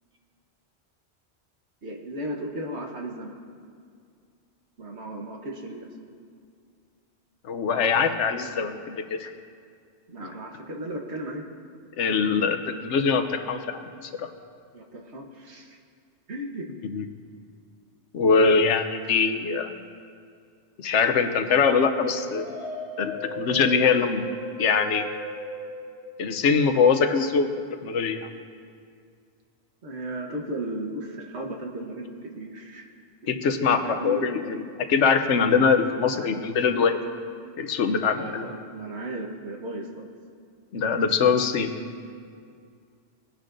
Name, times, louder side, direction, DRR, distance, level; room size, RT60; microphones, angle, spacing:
voice 1, 1.8-3.4 4.8-5.9 10.1-11.5 14.7-15.8 16.3-16.7 29.8-32.9 33.5-34.4 38.2-40.1, right 1 dB, 70° right, 1 dB, 1.5 m, -35 dB
voice 2, 7.4-9.3 12.0-14.3 16.9-17.0 18.1-19.7 20.8-22.5 23.0-24.2 24.6-25.0 26.2-27.5 27.8-28.3 33.3-34.6 34.9-37.0 37.6-38.5 40.7-41.7, left 5 dB, 80° left, 8 dB, 1.0 m, -23 dB
sound 1, 21.8-26.6, equal, 40° right, 3.7 m, -36 dB
20.0 x 10.0 x 2.6 m, 2.2 s
omnidirectional pair, 1.2 m